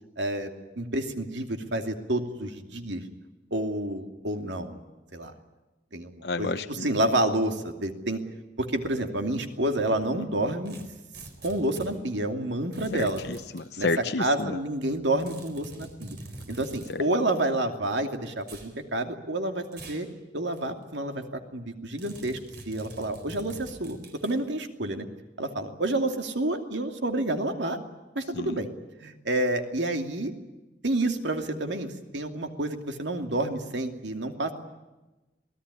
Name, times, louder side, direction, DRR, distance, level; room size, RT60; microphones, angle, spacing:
voice 1, 0.2-0.5 0.8-3.0 3.5-4.8 5.1-5.3 5.9-6.1 6.4-6.5 6.8-8.2 8.6-10.8 11.4-13.2 13.8-13.9 14.2-16.2 16.5-20.1 20.3-22.4 22.7-24.0 24.2-25.1 25.4-27.8 28.1-28.7 29.0-30.3 30.8-34.5, right 1 dB, 75° right, 5 dB, 2.7 m, -29 dB
voice 2, 6.2-6.9 10.2-10.5 12.9-14.6 16.9-17.0 28.3-28.6, left 3 dB, 65° left, 8 dB, 0.9 m, -31 dB
sound 1, 10.7-11.9 12.7-13.7 15.2-17.0 18.4-18.7 19.7-20.1 20.5-20.6 22.0-24.4, right 2 dB, 60° right, 4.4 m, -45 dB
27.0 x 18.5 x 9.9 m, 1.1 s
head